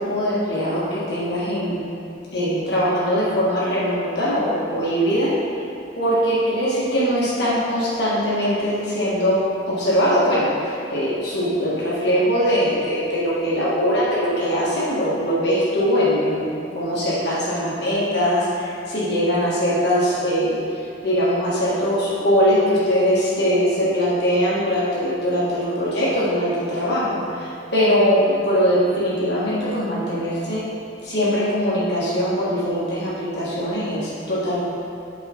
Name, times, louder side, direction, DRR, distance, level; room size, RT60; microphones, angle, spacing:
voice 1, 0.0-1.9 2.3-5.3 6.0-9.4 9.7-30.6 31.0-34.6, equal, 65° left, -8 dB, 1.7 m, -21 dB
8.9 x 4.9 x 4.4 m, 2.6 s
head